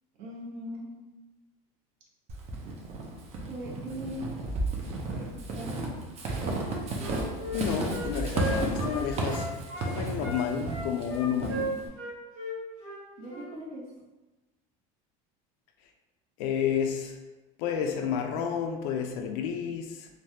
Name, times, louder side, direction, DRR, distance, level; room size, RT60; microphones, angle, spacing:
voice 1, 0.2-0.9 3.4-4.3 5.0-5.9 13.2-13.8, equal, 60° right, -4 dB, 1.0 m, -40 dB
Walk footsteps / Squeak, 2.3-11.9, right 2 dB, 35° right, 0.5 m, -33 dB
Wind instrument woodwind instrument, 6.5-9.9 10.2-13.5, right 1 dB, 85° right, 1.0 m, -36 dB
voice 2, 7.5-9.6 9.8-11.8 16.4-17.2 17.6-20.1, left 7 dB, 70° left, 4 dB, 0.4 m, -30 dB
3.2 x 2.2 x 2.7 m, 1.1 s
cardioid pair, 140°, 18 cm